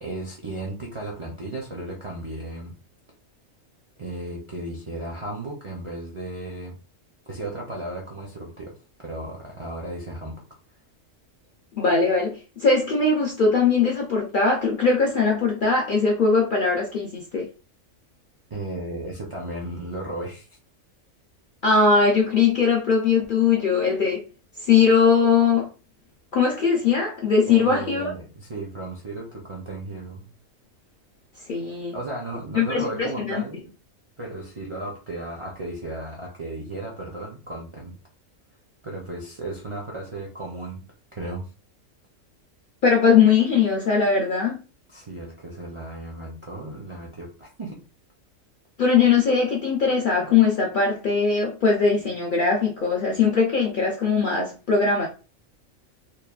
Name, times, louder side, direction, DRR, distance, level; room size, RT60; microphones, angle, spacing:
voice 1, 0.0-2.8 4.0-6.8 7.3-8.8 9.0-10.4 18.5-20.5 27.5-30.3 31.9-33.7 34.2-38.0 38.8-40.8 41.1-41.4 44.9-47.8, right 2 dB, 45° right, 0.4 m, -35 dB
voice 2, 11.8-17.5 21.6-24.2 24.6-25.7 26.3-28.1 31.5-32.0 32.6-33.4 42.8-44.6 48.8-55.1, left 5 dB, 60° left, 0.5 m, -20 dB
3.1 x 2.2 x 2.3 m
omnidirectional pair, 1.4 m